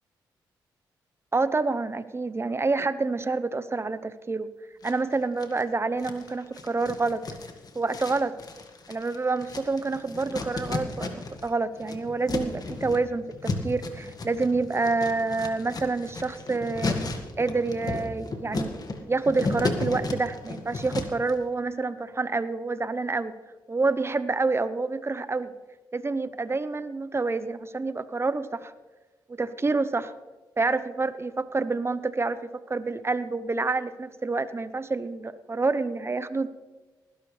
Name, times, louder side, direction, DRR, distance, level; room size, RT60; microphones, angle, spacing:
voice 1, 1.3-4.5 4.8-7.2 7.7-8.4 8.9-17.0 17.4-18.7 19.1-23.3 23.7-25.5 25.9-28.7 29.3-30.1 30.6-36.5, right 3 dB, 30° right, 13 dB, 0.9 m, -28 dB
sound 1, 4.8-5.6 6.0-11.5 11.7-21.3, left 3 dB, 45° left, 2.0 m, -34 dB
19.5 x 11.5 x 3.4 m, 1.2 s
supercardioid pair, 55°, 9 cm